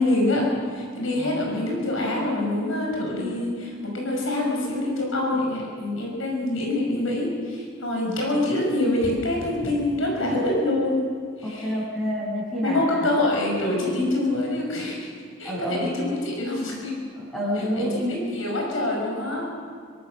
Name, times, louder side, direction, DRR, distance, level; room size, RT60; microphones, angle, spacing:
voice 1, 0.0-11.0 11.4-11.7 12.6-15.1 15.4-16.9 17.8-19.4, left 1 dB, 85° left, -1 dB, 6.1 m, -25 dB
voice 2, 1.2-1.5 8.0-8.2 11.4-13.1 15.4-15.9 17.2-18.3, equal, 5° left, -6 dB, 6.8 m, -29 dB
24.0 x 18.0 x 6.6 m, 2.2 s
head